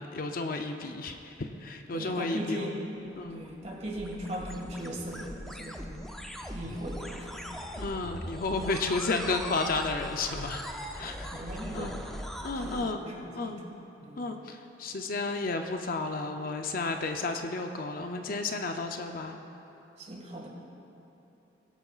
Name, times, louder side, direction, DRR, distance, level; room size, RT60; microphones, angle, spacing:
voice 1, 0.0-2.8 3.2-3.4 7.8-10.6 11.0-11.3 11.7-12.0 12.4-13.0 13.3-13.6 14.2-19.4, left 3 dB, 50° left, 5 dB, 0.5 m, -32 dB
voice 2, 1.9-3.0 3.3-5.9 6.5-7.4 11.0-12.8 13.0-13.6 14.0-14.2 20.0-20.5, right 1 dB, 35° right, -1 dB, 1.8 m, -38 dB
sound 1, 3.1-12.9, equal, ahead, 0.5 m, -41 dB
22.0 x 8.3 x 2.4 m, 3.0 s
head